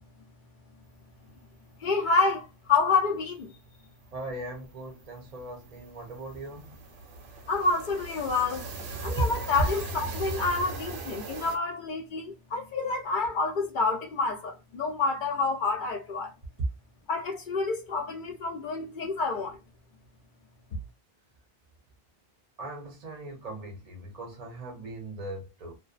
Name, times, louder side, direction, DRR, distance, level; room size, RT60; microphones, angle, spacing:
voice 1, 1.8-3.5 7.5-8.7 9.0-16.3 17.1-19.6, left 4 dB, 55° left, 0.7 m, -28 dB
sound 1, 3.2-3.3 3.5-3.7 4.0-11.6, right 3 dB, 90° right, 0.9 m, -40 dB
voice 2, 4.1-6.8 8.8-9.2 9.6-9.7 22.6-25.8, right 2 dB, 45° right, 0.6 m, -36 dB
2.6 x 2.0 x 2.4 m
omnidirectional pair, 1.1 m